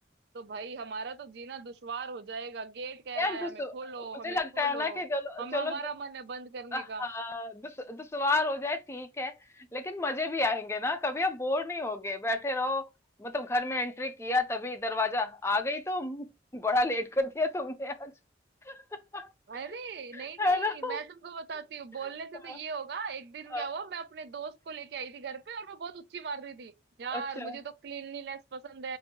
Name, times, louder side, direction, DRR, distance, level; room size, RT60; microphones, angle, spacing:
voice 1, 0.3-5.0 5.4-7.1 19.5-26.7 27.0-29.0, right 5 dB, 60° right, 0.4 m, -39 dB
voice 2, 3.2-3.7 4.0-5.8 6.7-12.9 13.2-16.3 16.5-18.1 18.7-19.3 20.1-21.0 22.5-22.6 23.5-23.7 27.1-27.6, left 2 dB, 15° left, 0.5 m, -31 dB
3.7 x 2.6 x 2.8 m
head